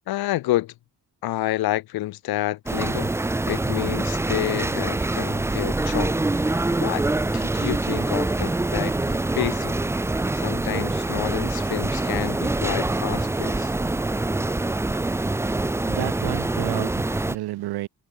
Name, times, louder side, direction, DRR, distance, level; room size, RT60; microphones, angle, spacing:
voice 1, 0.1-0.7 1.2-3.1 3.5-6.2 6.8-7.0 7.3-9.7 10.3-13.7, left 16 dB, 65° left, 0.5 m, -29 dB
sound 1, 2.7-17.4, right 2 dB, 5° right, 0.4 m, -25 dB
voice 2, 15.9-17.9, right 16 dB, 70° right, 0.5 m, -31 dB
cardioid pair, 65°, 41 cm